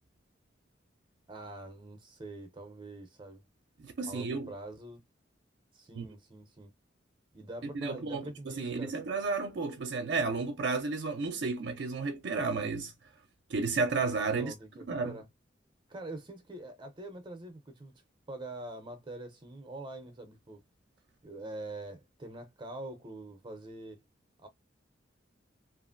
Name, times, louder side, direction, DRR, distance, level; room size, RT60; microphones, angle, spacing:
voice 1, 1.3-3.4 4.0-5.0 5.7-6.7 7.3-8.9 14.3-15.3 15.9-17.9 18.3-20.6 21.2-24.0 24.4-24.5, right 2 dB, 25° right, 0.6 m, -44 dB
voice 2, 3.8-4.5 6.0-6.1 7.7-12.9 13.5-14.5 14.9-15.2, right 4 dB, 65° right, 0.5 m, -32 dB
2.9 x 2.4 x 2.4 m
head